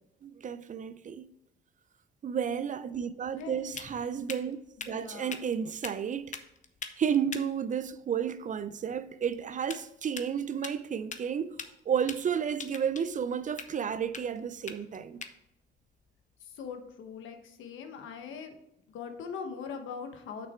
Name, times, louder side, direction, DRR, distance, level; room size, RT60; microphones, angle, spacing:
voice 1, 0.2-1.3 2.2-4.6 4.9-6.3 7.0-11.6 11.9-15.2, right 7 dB, 40° right, 0.5 m, -32 dB
sound 1, 2.5-17.2, left 6 dB, 40° left, 0.8 m, -46 dB
voice 2, 3.4-4.2 4.8-5.4 16.4-18.5 18.9-20.5, left 6 dB, 80° left, 1.2 m, -42 dB
6.4 x 6.0 x 4.4 m
cardioid pair, 90°, 20 cm